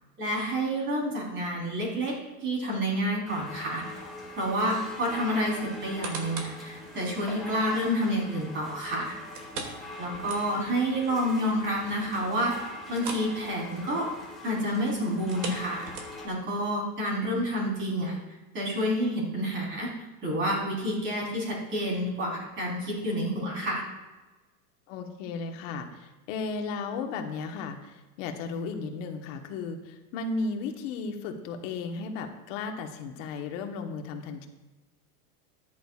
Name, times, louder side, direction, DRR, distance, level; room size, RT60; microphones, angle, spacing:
voice 1, 0.2-2.1 2.4-4.0 4.4-9.1 10.0-12.5 12.9-14.1 14.4-15.8 16.2-18.2 18.5-19.9 20.2-23.8, equal, 25° right, -3 dB, 3.9 m, -29 dB
sound 1, 3.3-16.3, left 2 dB, ahead, 2.0 m, -43 dB
sound 2, 5.7-6.6 7.1-7.2 9.3-10.8 11.1-11.2 11.7-11.8 12.9-13.3 13.6-13.8 15.1-16.4 17.0-17.1, right 4 dB, 75° right, 2.5 m, -39 dB
voice 2, 24.9-34.5, left 4 dB, 50° left, 5 dB, 1.4 m, -35 dB
14.0 x 10.5 x 2.4 m, 1.2 s
supercardioid pair, 150°, 49 cm